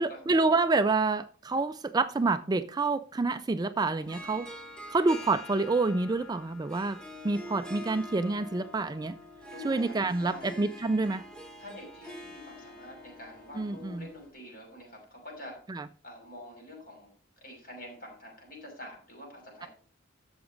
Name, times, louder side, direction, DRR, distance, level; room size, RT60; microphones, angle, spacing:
voice 1, 0.0-4.5 4.9-7.0 7.2-9.1 9.6-11.2 13.6-14.1 15.7-15.9, right 3 dB, 20° right, 0.3 m, -28 dB
Harp, 4.0-14.3, left 1 dB, 5° left, 1.9 m, -46 dB
voice 2, 9.5-10.5 11.6-15.6 16.0-17.1 17.4-19.7, left 1 dB, 50° left, 6.2 m, -46 dB
13.0 x 7.0 x 3.9 m
head